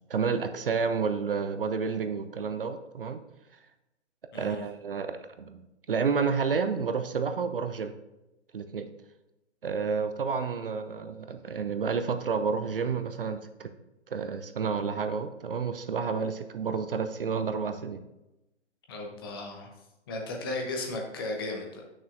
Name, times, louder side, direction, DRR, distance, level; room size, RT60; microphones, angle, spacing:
voice 1, 0.1-3.2 4.3-5.6 5.9-7.9 8.5-8.9 9.6-13.7 14.1-18.0, right 5 dB, 50° right, 8 dB, 0.6 m, -30 dB
voice 2, 18.9-19.7 20.1-21.8, left 2 dB, 20° left, 1 dB, 0.7 m, -35 dB
9.1 x 6.1 x 2.5 m, 0.95 s
figure-of-eight pair, 135°, 35 cm